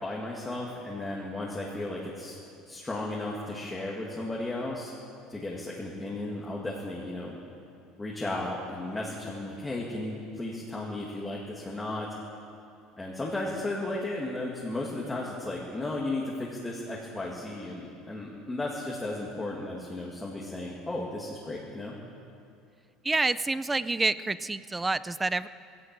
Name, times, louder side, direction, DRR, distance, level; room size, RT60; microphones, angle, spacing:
voice 1, 0.0-2.4 2.7-4.9 5.3-7.4 8.0-12.1 13.0-21.9, left 2 dB, 10° left, -4 dB, 2.0 m, -34 dB
voice 2, 23.0-25.5, right 3 dB, 10° right, 15 dB, 0.4 m, -28 dB
20.0 x 17.0 x 8.8 m, 2.5 s
cardioid pair, 175°, 0 cm